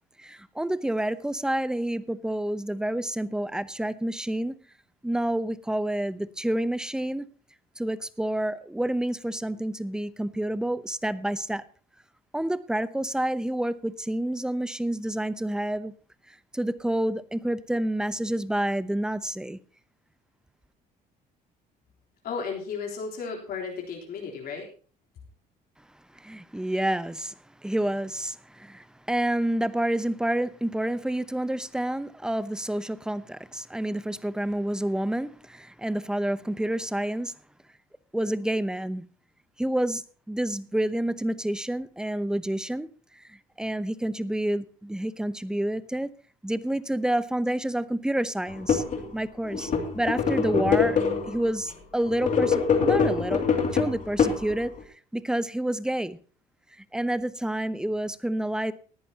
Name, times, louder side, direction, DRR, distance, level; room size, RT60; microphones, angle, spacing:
voice 1, 0.2-4.6 5.0-7.3 7.8-11.6 12.3-15.9 16.3-19.6 26.1-27.3 27.6-37.3 38.1-39.1 39.6-42.9 43.1-46.1 46.4-48.8 49.1-53.4 53.7-54.7 55.1-56.2 56.9-58.7, right 1 dB, 5° right, 0.7 m, -29 dB
voice 2, 22.2-24.7, left 5 dB, 65° left, 3.7 m, -34 dB
sound 1, 48.5-49.0 49.5-51.4 52.1-54.8, left 6 dB, 50° left, 2.7 m, -24 dB
18.5 x 11.0 x 2.9 m
cardioid pair, 110°, 17 cm